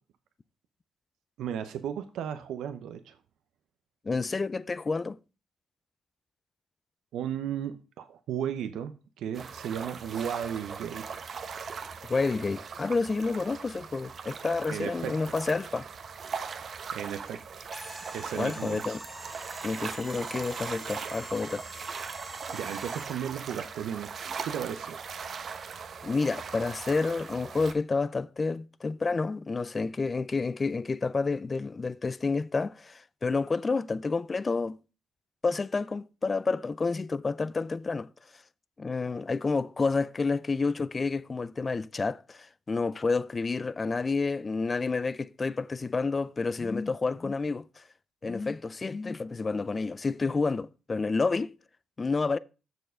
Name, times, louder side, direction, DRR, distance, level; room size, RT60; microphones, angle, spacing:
voice 1, 1.4-3.2 7.1-11.2 14.7-15.1 16.9-17.7 18.1-19.0 22.5-24.1 24.4-25.0, right 9 dB, 80° right, 0.7 m, -35 dB
voice 2, 4.0-5.2 12.1-15.9 18.4-19.0 19.6-21.6 26.0-34.8 35.4-38.1 38.8-47.8 48.2-51.5 52.0-52.4, left 4 dB, 30° left, 0.4 m, -29 dB
sound 1, 9.3-27.7, right 6 dB, 50° right, 0.9 m, -40 dB
sound 2, 17.7-23.3, equal, ahead, 1.0 m, -46 dB
6.9 x 6.3 x 5.0 m
cardioid pair, 90°, 0 cm